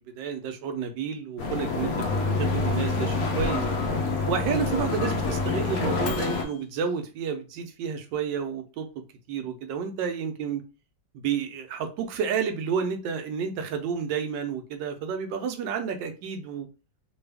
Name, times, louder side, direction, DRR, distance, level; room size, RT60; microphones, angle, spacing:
voice 1, 0.1-3.7 4.3-8.9 9.3-10.6 11.1-16.7, right 7 dB, 80° right, 6 dB, 1.3 m, -30 dB
sound 1, 1.4-6.4, left 4 dB, 65° left, 1.0 m, -28 dB
Microwave oven, 1.8-6.6, left 2 dB, 85° left, 1.3 m, -32 dB
3.3 x 2.3 x 3.3 m, 0.32 s
omnidirectional pair, 2.0 m